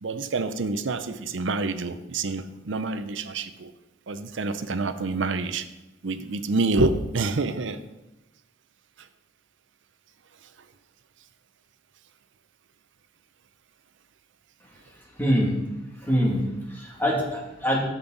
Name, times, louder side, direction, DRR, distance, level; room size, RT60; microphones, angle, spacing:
voice 1, 0.0-3.7 4.1-5.6 6.0-7.8, right 3 dB, 75° right, 11 dB, 0.6 m, -27 dB
voice 2, 14.9-15.5 16.0-17.8, equal, 10° left, -3 dB, 2.3 m, -25 dB
10.5 x 7.6 x 4.0 m, 0.98 s
head